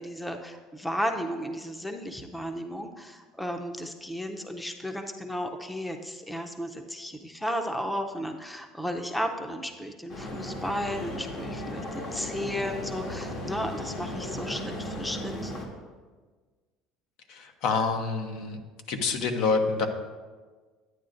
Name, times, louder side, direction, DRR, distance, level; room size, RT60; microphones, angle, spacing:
voice 1, 0.0-15.5, equal, 5° left, 5 dB, 0.6 m, -34 dB
sound 1, 10.1-15.7, left 1 dB, 55° left, 1.6 m, -36 dB
voice 2, 17.3-18.6 18.9-19.9, left 4 dB, 70° left, 6 dB, 0.9 m, -27 dB
11.0 x 9.2 x 2.6 m, 1.4 s
cardioid pair, 125°, 0 cm